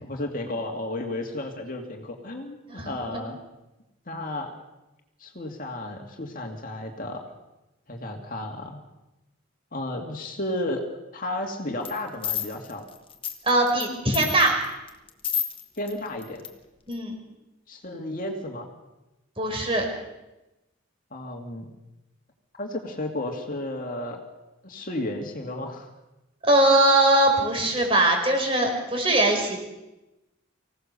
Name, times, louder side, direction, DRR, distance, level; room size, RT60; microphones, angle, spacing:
voice 1, 0.0-3.4 4.1-4.5 5.2-7.2 7.9-8.8 9.7-10.8 11.1-12.8 15.8-16.4 17.7-18.7 21.1-21.7 22.6-24.2 24.6-25.9, left 1 dB, 40° left, 2 dB, 2.3 m, -33 dB
voice 2, 2.8-3.2 13.4-14.5 16.9-17.1 19.4-19.8 26.4-29.6, right 1 dB, 25° right, 2 dB, 4.9 m, -21 dB
sound 1, 11.8-12.0 12.2-13.9 14.1-15.9 16.2-16.5 16.9-17.0, left 9 dB, 25° left, 1.5 m, -30 dB
25.0 x 17.5 x 6.8 m, 0.99 s
head